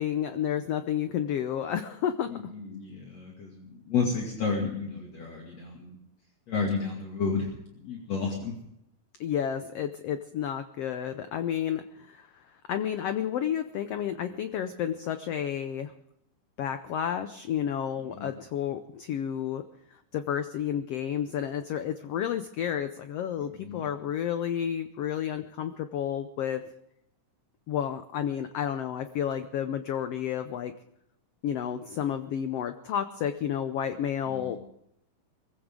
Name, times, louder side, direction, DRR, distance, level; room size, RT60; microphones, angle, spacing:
voice 1, 0.0-2.3 9.2-12.3 12.7-15.9 16.6-19.6 20.1-26.6 27.7-30.7 31.4-34.6, left 9 dB, 85° left, 9 dB, 1.3 m, -31 dB
voice 2, 2.3-6.0 6.5-7.5 7.8-8.5 18.0-18.3 23.6-23.8 34.3-34.6, left 5 dB, 55° left, -1 dB, 3.4 m, -32 dB
23.0 x 15.0 x 3.8 m, 0.76 s
omnidirectional pair, 3.8 m